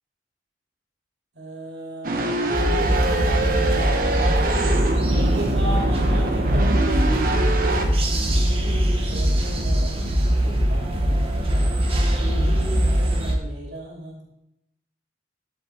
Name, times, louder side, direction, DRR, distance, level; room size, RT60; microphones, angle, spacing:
voice 1, 1.3-2.6 5.1-7.1 8.1-10.1 10.4-11.8 12.2-14.2, equal, 80° right, -2 dB, 2.9 m, -35 dB
sound 1, 2.0-7.9, right 2 dB, 55° right, 0.9 m, -24 dB
sound 2, 2.5-13.4, equal, 35° right, 1.1 m, -22 dB
sound 3, 2.8-12.8, equal, 80° left, 1.7 m, -37 dB
11.0 x 4.6 x 4.4 m, 0.83 s
head